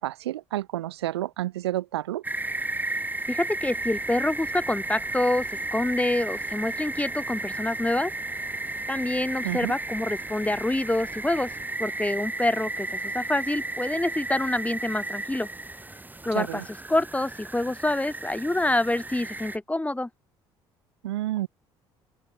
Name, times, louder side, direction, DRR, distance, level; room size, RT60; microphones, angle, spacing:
voice 1, 0.0-2.2 9.4-9.7 16.3-16.6 21.0-21.5, right 14 dB, 85° right, 0.5 m, -30 dB
sound 1, 2.2-19.6, right 2 dB, 15° right, 2.6 m, -34 dB
voice 2, 3.3-5.5 5.7-8.1 8.9-11.5 11.8-15.5 16.2-16.6 16.9-20.1, left 2 dB, 10° left, 3.5 m, -26 dB
sound 2, 3.6-11.6, right 5 dB, 30° right, 5.6 m, -50 dB
open air
hypercardioid pair, 55°, 13 cm